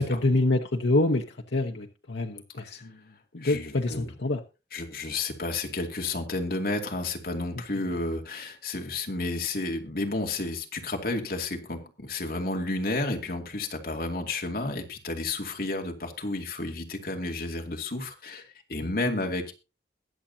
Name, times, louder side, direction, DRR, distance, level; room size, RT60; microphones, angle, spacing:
voice 1, 0.0-3.0 3.3-4.4 18.8-19.1, left 2 dB, 90° left, 2 dB, 1.0 m, -26 dB
voice 2, 3.4-4.1 4.7-19.5, left 2 dB, 55° left, 2 dB, 2.5 m, -31 dB
22.0 x 7.3 x 2.8 m, 0.30 s
head